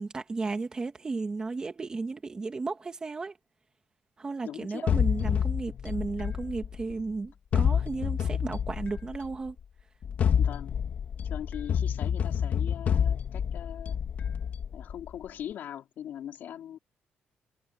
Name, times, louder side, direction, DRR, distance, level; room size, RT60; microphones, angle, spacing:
voice 1, 0.0-3.4 4.2-9.6, right 3 dB, 25° right, 2.2 m, -34 dB
voice 2, 4.4-4.9 10.4-10.8 11.2-14.0 14.7-16.8, left 10 dB, 70° left, 4.7 m, -41 dB
sound 1, 4.9-7.0 7.5-9.3 10.0-15.1, left 8 dB, 50° left, 2.3 m, -28 dB
cardioid pair, 165°, 3 cm